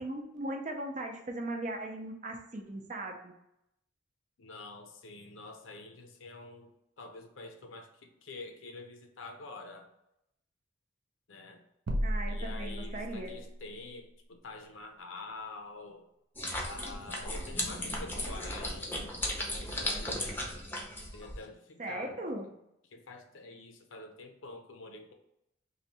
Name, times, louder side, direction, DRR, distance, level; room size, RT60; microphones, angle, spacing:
voice 1, 0.0-3.3 12.0-13.4 21.8-22.4, right 1 dB, 40° right, 3 dB, 0.6 m, -38 dB
voice 2, 4.4-9.9 11.3-11.6 12.3-16.1 16.6-20.4 21.1-22.2 22.4-22.5 22.9-25.1, left 3 dB, 85° left, 5 dB, 0.6 m, -47 dB
sound 1, 11.9-13.5, equal, 85° right, 0.6 m, -33 dB
sound 2, 16.3-21.4, left 1 dB, 10° left, 0.7 m, -36 dB
3.2 x 2.6 x 4.1 m, 0.82 s
head